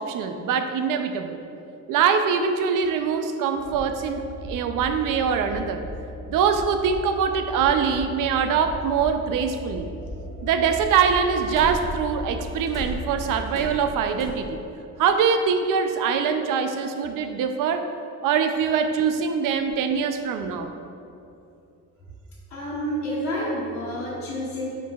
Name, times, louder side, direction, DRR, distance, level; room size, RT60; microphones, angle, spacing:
voice 1, 0.0-1.4 1.9-5.8 6.3-9.9 10.4-14.6 15.0-17.9 18.2-20.7, right 6 dB, 90° right, 7 dB, 0.5 m, -23 dB
sound 1, 3.6-13.4, equal, 30° right, 0.6 m, -37 dB
sound 2, 11.5-12.0 12.7-14.3, right 1 dB, ahead, 1.0 m, -34 dB
voice 2, 22.5-24.7, equal, 60° left, -9 dB, 1.2 m, -29 dB
9.5 x 4.7 x 2.3 m, 2.7 s
cardioid pair, 155°, 31 cm